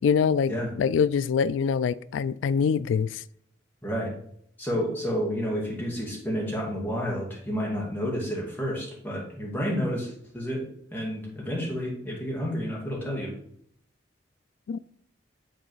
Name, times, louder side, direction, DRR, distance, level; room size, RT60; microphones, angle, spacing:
voice 1, 0.0-0.5 0.8-3.2 14.7-14.8, left 6 dB, 80° left, 17 dB, 0.3 m, -24 dB
voice 2, 4.6-10.6 10.9-13.3, equal, 10° left, -4 dB, 2.1 m, -30 dB
7.9 x 4.0 x 4.6 m, 0.68 s
head